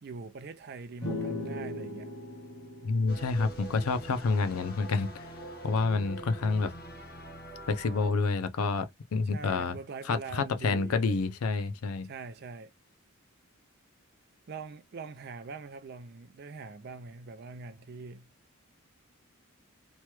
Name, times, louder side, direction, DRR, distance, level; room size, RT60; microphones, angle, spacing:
voice 1, 0.0-2.1 9.2-11.2 12.0-12.7 14.5-18.3, right 4 dB, 45° right, 0.4 m, -43 dB
sound 1, 1.0-4.6, left 2 dB, 60° left, 1.2 m, -39 dB
voice 2, 2.8-5.3 5.6-6.7 7.7-9.8 10.1-12.1, left 4 dB, 85° left, 0.5 m, -28 dB
sound 2, 3.1-8.1, right 1 dB, 45° left, 0.9 m, -44 dB
3.0 x 2.2 x 2.9 m
head